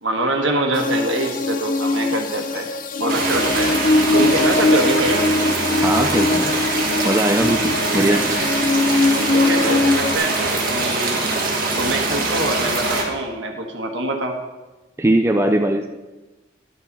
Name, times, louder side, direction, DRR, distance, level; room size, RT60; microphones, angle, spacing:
voice 1, 0.0-2.7 3.0-3.7 4.1-5.3 9.3-11.2 11.7-14.4, right 1 dB, 75° right, 3 dB, 1.4 m, -24 dB
sound 1, 0.7-10.2, left 2 dB, 45° left, 0.5 m, -21 dB
sound 2, 3.1-13.0, right 3 dB, 50° right, 1.7 m, -23 dB
voice 2, 5.8-6.5 7.0-8.3 15.0-15.9, right 1 dB, 15° right, 4 dB, 0.4 m, -20 dB
11.0 x 7.8 x 4.1 m, 1.1 s
head